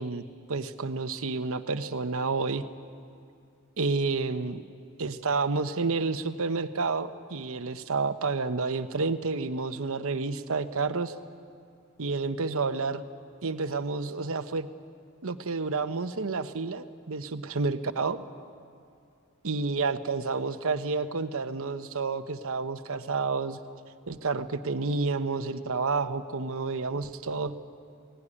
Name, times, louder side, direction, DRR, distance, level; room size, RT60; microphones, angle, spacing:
voice 1, 0.0-2.6 3.8-4.6 5.0-11.1 12.0-13.0 13.4-14.7 15.2-18.2 19.4-23.6 24.1-27.6, right 4 dB, 65° right, 10 dB, 0.9 m, -30 dB
21.0 x 18.0 x 9.9 m, 2.3 s
head